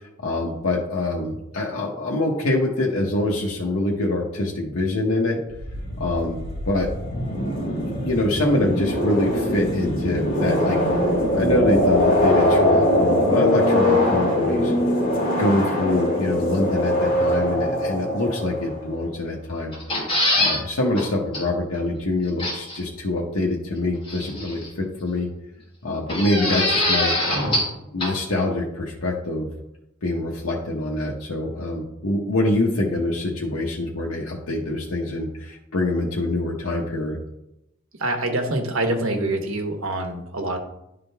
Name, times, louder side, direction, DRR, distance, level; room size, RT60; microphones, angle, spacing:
voice 1, 0.2-5.4 6.0-6.9 7.4-7.5 7.9-10.8 11.3-14.7 15.4-19.7 20.3-25.3 25.8-27.5 27.9-29.5 30.0-37.2, left 2 dB, 85° left, -3 dB, 1.0 m, -25 dB
sound 1, 5.5-18.9, left 1 dB, 45° left, 2.1 m, -22 dB
sound 2, 19.7-20.6 21.0-21.1 21.3-21.4 22.4-22.8 24.1-24.7 26.1-27.7 28.0-28.1, left 1 dB, 25° left, 2.4 m, -23 dB
voice 2, 38.0-40.6, right 2 dB, 70° right, 4 dB, 1.1 m, -25 dB
11.0 x 3.8 x 3.5 m, 0.87 s
head